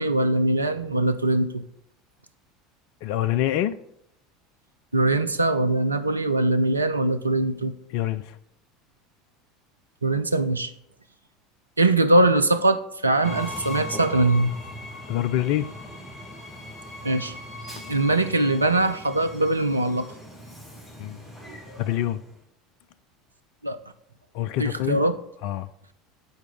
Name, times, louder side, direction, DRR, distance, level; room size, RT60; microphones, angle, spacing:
voice 1, 0.0-1.6 4.9-7.7 10.0-10.7 11.8-14.5 17.0-17.3 17.9-20.1 23.6-23.8 24.6-25.1, right 2 dB, 85° right, 0.4 m, -22 dB
voice 2, 3.0-3.8 7.9-8.4 15.1-15.7 17.9-18.0 21.0-21.2 21.8-22.2 24.3-25.0 25.4-25.7, left 13 dB, 55° left, 0.4 m, -26 dB
Train, 13.2-22.4, left 1 dB, 25° left, 2.6 m, -39 dB
8.0 x 4.6 x 5.2 m
figure-of-eight pair, 70°, 0 cm